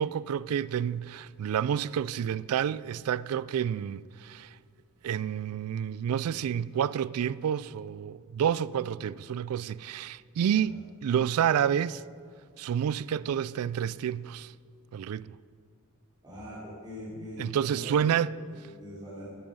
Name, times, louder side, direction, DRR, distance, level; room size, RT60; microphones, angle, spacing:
voice 1, 0.0-4.5 5.0-12.0 12.6-14.5 14.9-15.3 17.4-18.3, right 9 dB, 75° right, 0.3 m, -29 dB
voice 2, 16.2-18.0 18.5-19.2, left 1 dB, 20° right, 3.7 m, -42 dB
12.5 x 11.0 x 5.5 m
head